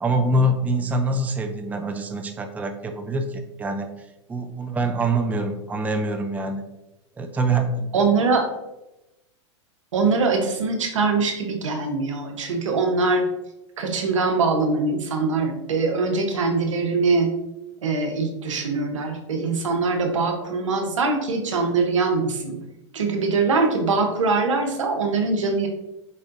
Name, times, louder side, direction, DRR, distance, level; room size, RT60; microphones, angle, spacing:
voice 1, 0.0-6.6 7.2-7.9, right 2 dB, 10° right, 6 dB, 0.4 m, -25 dB
voice 2, 7.9-8.5 9.9-13.3 13.8-17.3 17.8-22.6 22.9-25.7, right 4 dB, 90° right, 4 dB, 0.9 m, -22 dB
4.8 x 4.1 x 2.5 m, 0.94 s
hypercardioid pair, 110°, 16 cm